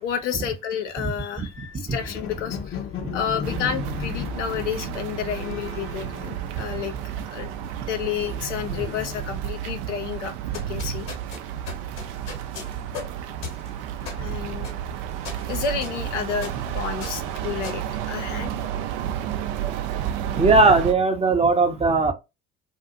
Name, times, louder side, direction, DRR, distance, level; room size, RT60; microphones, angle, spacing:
voice 1, 0.0-2.8 3.1-7.0 7.3-7.5 7.9-11.1 14.2-14.7 15.5-18.5, left 7 dB, 85° left, 0.6 m, -30 dB
sound 1, 1.5-7.1 7.4-9.6, left 7 dB, 35° left, 0.7 m, -36 dB
sound 2, 3.4-20.9, right 11 dB, 70° right, 0.5 m, -31 dB
sound 3, 10.3-18.7, left 5 dB, 70° left, 1.3 m, -39 dB
voice 2, 20.3-22.1, right 3 dB, 15° right, 0.6 m, -19 dB
2.6 x 2.4 x 2.4 m
hypercardioid pair, 60°, 35 cm